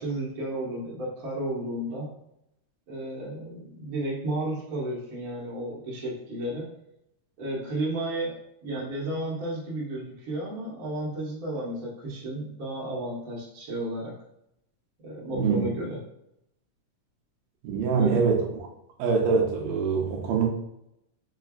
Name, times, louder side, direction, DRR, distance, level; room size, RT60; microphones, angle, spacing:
voice 1, 0.0-2.1 2.9-6.7 7.4-8.3 8.6-14.1 15.0-16.0 17.9-18.2, right 1 dB, 65° right, -6 dB, 0.8 m, -33 dB
voice 2, 17.6-18.6 19.0-20.5, right 5 dB, 85° right, 0 dB, 2.3 m, -24 dB
5.4 x 2.4 x 2.3 m, 0.79 s
omnidirectional pair, 3.8 m